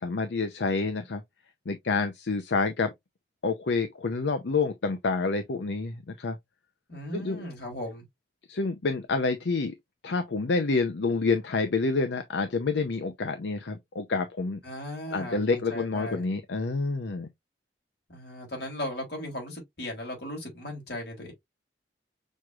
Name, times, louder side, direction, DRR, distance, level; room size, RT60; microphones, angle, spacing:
voice 1, 0.0-1.2 1.7-2.9 3.4-6.4 7.1-7.4 8.5-9.7 10.0-14.6 15.1-17.3, left 3 dB, 85° left, 0.6 m, -28 dB
voice 2, 6.9-8.1 14.6-16.2 18.1-21.3, left 1 dB, 65° left, 2.7 m, -37 dB
6.4 x 3.0 x 2.3 m
head